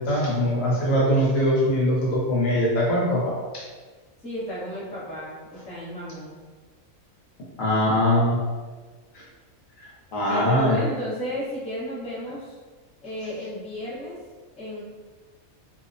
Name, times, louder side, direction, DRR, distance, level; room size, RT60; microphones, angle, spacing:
voice 1, 0.0-3.6 7.6-8.4 9.1-9.2 10.1-10.8, equal, 70° left, -5 dB, 1.1 m, -22 dB
voice 2, 4.2-6.4 10.3-12.6 13.0-14.2 14.6-14.8, left 1 dB, 10° left, -10 dB, 0.5 m, -33 dB
2.7 x 2.0 x 2.5 m, 1.4 s
omnidirectional pair, 1.4 m